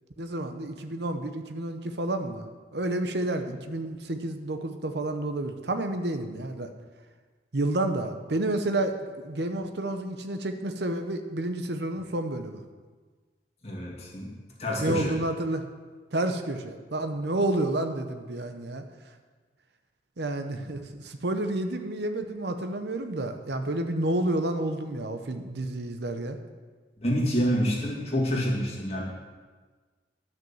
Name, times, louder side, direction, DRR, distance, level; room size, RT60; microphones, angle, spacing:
voice 1, 0.2-2.5 2.7-6.7 7.5-12.6 14.8-15.6 16.1-18.8 20.2-26.4, right 1 dB, 70° right, 7 dB, 0.9 m, -30 dB
voice 2, 13.6-15.1 20.6-20.7 27.0-29.0, equal, 35° left, -3 dB, 2.3 m, -28 dB
10.5 x 6.2 x 7.2 m, 1.4 s
head